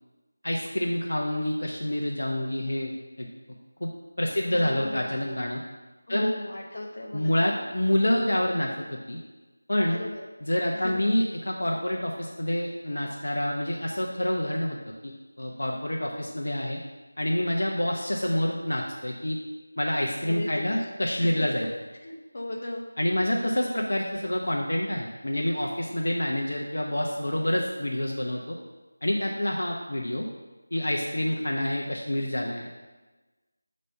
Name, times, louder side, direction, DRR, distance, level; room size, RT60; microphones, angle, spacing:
voice 1, 0.4-3.3 3.8-3.9 4.2-5.6 6.1-6.3 7.1-9.2 9.7-10.0 10.4-14.8 15.0-15.1 15.4-16.8 17.2-19.4 19.8-21.7 23.0-28.6 29.0-30.3 30.7-32.7, left 1 dB, 70° left, -1 dB, 0.8 m, -27 dB
voice 2, 4.5-5.3 6.1-7.7 9.9-10.2 10.7-11.0 20.3-20.9 21.2-21.5 22.0-22.8, left 1 dB, 45° left, -1 dB, 1.1 m, -36 dB
6.7 x 3.2 x 5.6 m, 1.2 s
figure-of-eight pair, 170°, 0 cm